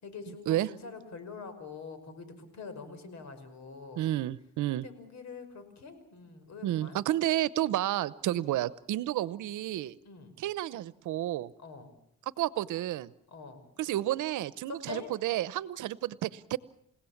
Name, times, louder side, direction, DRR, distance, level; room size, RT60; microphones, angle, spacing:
voice 1, 0.0-4.0 4.7-7.0 8.3-8.5 10.0-10.4 11.6-11.9 13.3-13.8 14.7-15.1, left 4 dB, 65° left, 10 dB, 5.4 m, -45 dB
voice 2, 4.0-4.9 6.6-10.0 10.4-11.5 12.4-13.1 13.8-16.6, right 14 dB, 80° right, 18 dB, 0.9 m, -31 dB
29.0 x 17.0 x 7.3 m, 0.72 s
cardioid pair, 90°, 30 cm